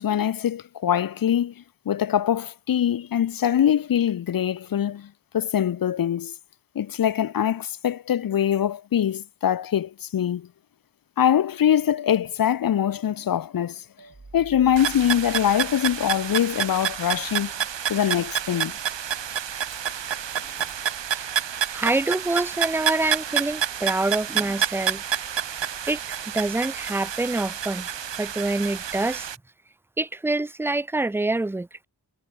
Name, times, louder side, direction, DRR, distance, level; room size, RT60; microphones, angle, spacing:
voice 1, 0.0-1.5 1.9-6.3 6.8-10.5 11.2-13.8 14.3-17.5 17.9-18.7, left 10 dB, 55° left, 0.5 m, -23 dB
sound 1, 14.0-17.2, right 3 dB, 50° right, 6.7 m, -48 dB
sound 2, 14.8-29.4, right 9 dB, 80° right, 0.8 m, -29 dB
voice 2, 21.7-25.0 25.9-26.0 26.3-27.9 28.2-29.3 30.0-31.8, right 2 dB, 5° right, 0.3 m, -26 dB
wide cardioid pair, 50°, 43 cm